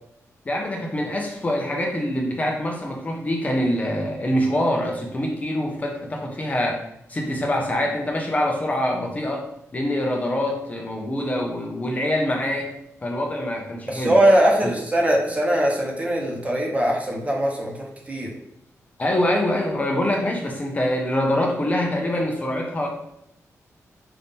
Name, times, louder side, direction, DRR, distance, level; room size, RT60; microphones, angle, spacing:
voice 1, 0.5-12.7 13.0-14.2 14.6-14.7 19.0-22.9, left 1 dB, 25° left, 0 dB, 0.7 m, -25 dB
voice 2, 13.9-18.3, right 1 dB, 25° right, -1 dB, 1.0 m, -21 dB
5.6 x 2.7 x 3.6 m, 0.79 s
wide cardioid pair, 115°, 6 cm